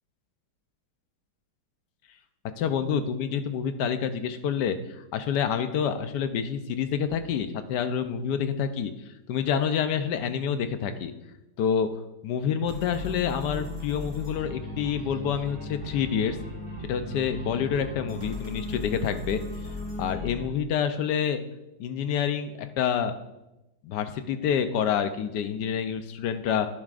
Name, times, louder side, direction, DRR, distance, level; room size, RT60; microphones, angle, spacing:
voice 1, 2.6-8.9 9.3-11.1 11.6-11.9 12.2-16.4 16.8-19.4 20.0-21.4 21.8-23.1 23.8-26.7, left 7 dB, 75° left, 9 dB, 1.2 m, -27 dB
sound 1, 12.7-20.4, left 2 dB, 45° right, 3.6 m, -37 dB
11.0 x 11.0 x 2.5 m, 0.96 s
omnidirectional pair, 1.9 m